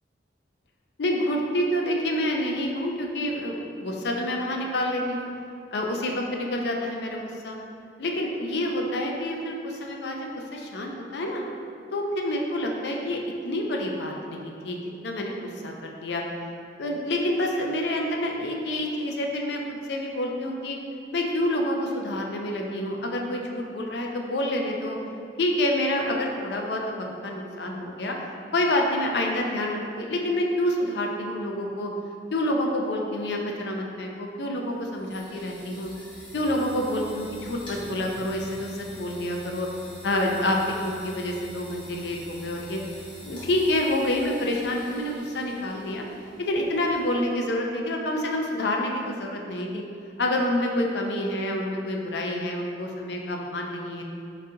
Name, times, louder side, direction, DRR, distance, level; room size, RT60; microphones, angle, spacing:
voice 1, 1.0-5.3 5.7-7.6 8.0-11.4 11.9-13.2 13.4-14.8 15.0-16.2 16.8-19.6 19.9-20.8 21.1-25.0 25.4-28.1 28.5-31.9 32.3-35.9 36.3-39.7 40.0-42.8 43.2-46.0 46.4-49.8 50.2-54.0, left 1 dB, 70° left, 1 dB, 0.5 m, -28 dB
sound 1, 34.6-47.4, left 1 dB, 30° left, 0.8 m, -45 dB
3.9 x 2.7 x 3.7 m, 2.5 s
head